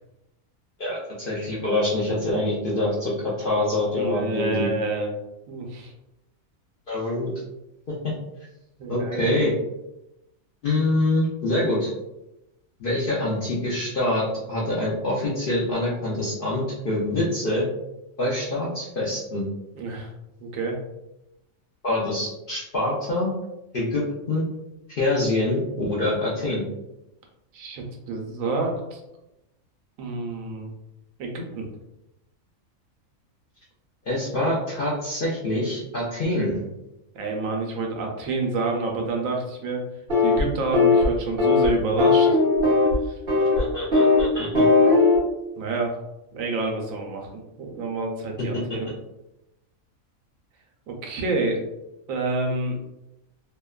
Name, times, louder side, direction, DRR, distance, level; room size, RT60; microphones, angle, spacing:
voice 1, 0.8-4.7 6.9-7.3 7.9-8.1 8.9-9.5 10.6-11.9 12.8-17.7 18.2-19.5 21.8-23.3 23.7-24.4 24.9-26.6 34.1-36.6 43.4-44.7, left 1 dB, 60° left, -5 dB, 0.5 m, -25 dB
voice 2, 4.0-5.2 5.5-5.9 8.8-9.3 19.7-20.1 20.4-20.8 27.5-29.0 30.0-30.7 31.2-31.7 37.1-39.8 40.2-42.3 43.1-43.2 44.8-45.0 45.6-46.0 46.3-48.9 50.9-51.6 52.1-52.8, right 3 dB, 75° right, 1 dB, 1.0 m, -28 dB
sound 1, 40.1-40.4 40.7-41.1 41.4-41.7 42.0-42.9 43.3-43.6 43.9-44.2 44.5-45.2, left 3 dB, 45° right, 0.9 m, -18 dB
2.7 x 2.2 x 2.3 m, 0.91 s
omnidirectional pair, 1.4 m